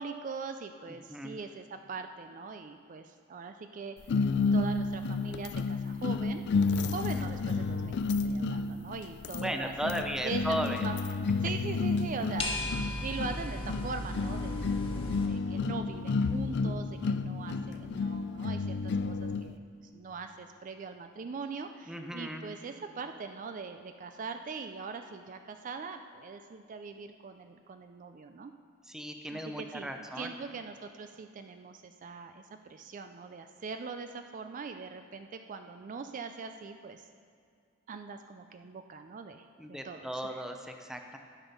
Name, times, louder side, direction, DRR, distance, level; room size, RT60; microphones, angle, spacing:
voice 1, 0.0-4.0 4.5-6.4 6.9-9.9 10.2-11.0 11.4-15.0 15.2-19.6 19.9-28.5 29.3-37.1 37.9-40.4, right 4 dB, 40° right, 7 dB, 0.4 m, -42 dB
sound 1, 4.1-19.5, left 4 dB, 60° left, 0.4 m, -31 dB
voice 2, 6.8-7.3 9.4-10.9 21.9-22.5 28.8-30.4 39.6-41.2, equal, 5° right, 4 dB, 0.6 m, -36 dB
sound 2, 12.4-15.3, left 1 dB, 30° left, 1.2 m, -36 dB
13.0 x 6.2 x 5.4 m, 2.2 s
head